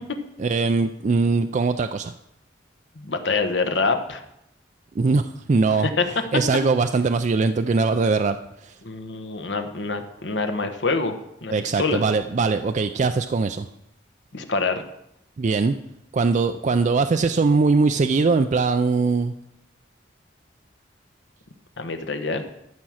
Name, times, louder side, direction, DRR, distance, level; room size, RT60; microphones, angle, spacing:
voice 1, 0.4-2.1 5.0-5.9 6.3-8.4 8.6-8.7 11.5-13.7 15.4-15.7 16.1-19.3, right 4 dB, 40° right, 9 dB, 0.4 m, -21 dB
voice 2, 3.0-4.2 6.0-6.1 8.8-12.0 14.3-14.8 21.8-22.4, left 4 dB, 75° left, 6 dB, 1.1 m, -26 dB
13.0 x 5.9 x 6.3 m, 0.81 s
head